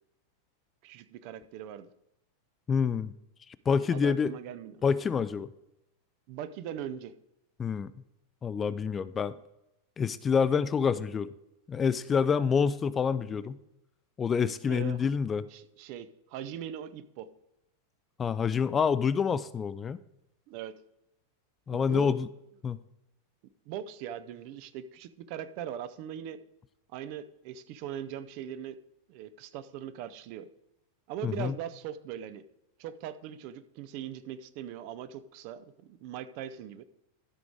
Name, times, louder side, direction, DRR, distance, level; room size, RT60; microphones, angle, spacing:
voice 1, 0.8-1.9 3.9-4.8 6.3-7.1 14.7-15.1 15.5-17.3 20.5-20.7 21.7-22.2 23.7-26.4 26.9-28.8 29.1-30.5 31.1-32.4 32.8-36.8, right 9 dB, 45° right, 13 dB, 0.6 m, -40 dB
voice 2, 2.7-3.1 3.7-4.3 4.8-5.5 7.6-7.9 8.4-9.3 10.0-11.3 11.7-13.6 14.2-15.4 18.2-20.0 21.7-22.3 22.6-22.8 31.2-31.5, left 6 dB, 20° left, 15 dB, 0.3 m, -27 dB
12.5 x 5.1 x 4.7 m, 0.86 s
figure-of-eight pair, 90°, 0 cm